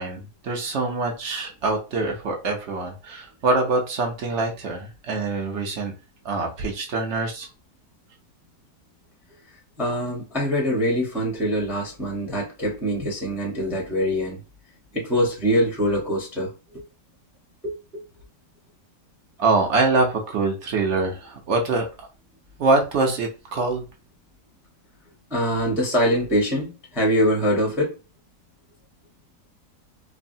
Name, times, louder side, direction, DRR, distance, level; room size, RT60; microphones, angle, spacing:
voice 1, 0.0-5.9 6.2-7.5 19.4-22.1 22.6-23.8, right 3 dB, 65° right, 0.7 m, -24 dB
voice 2, 9.8-14.4 14.9-16.5 17.6-18.0 25.3-27.9, equal, ahead, 0.4 m, -24 dB
3.2 x 2.1 x 2.6 m
omnidirectional pair, 1.8 m